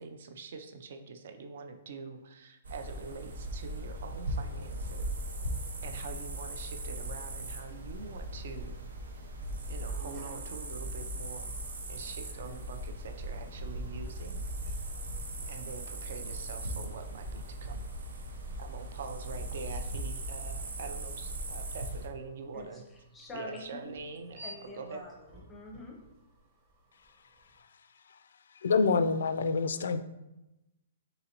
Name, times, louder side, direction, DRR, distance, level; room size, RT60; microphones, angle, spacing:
voice 1, 0.0-5.1 5.8-8.8 9.7-11.5 11.9-14.4 15.5-17.9 18.6-22.8 23.3-24.4 24.7-25.0, right 5 dB, 50° right, 7 dB, 0.4 m, -44 dB
sound 1, 2.6-22.1, right 1 dB, 90° right, 0.7 m, -38 dB
sound 2, 9.7-27.6, right 1 dB, 25° right, 1.0 m, -56 dB
voice 2, 23.1-23.9 24.4-26.0, left 3 dB, 10° left, -1 dB, 0.6 m, -45 dB
voice 3, 28.6-30.0, left 4 dB, 75° left, 12 dB, 0.3 m, -26 dB
3.8 x 3.8 x 2.8 m, 0.96 s
hypercardioid pair, 175°, 0 cm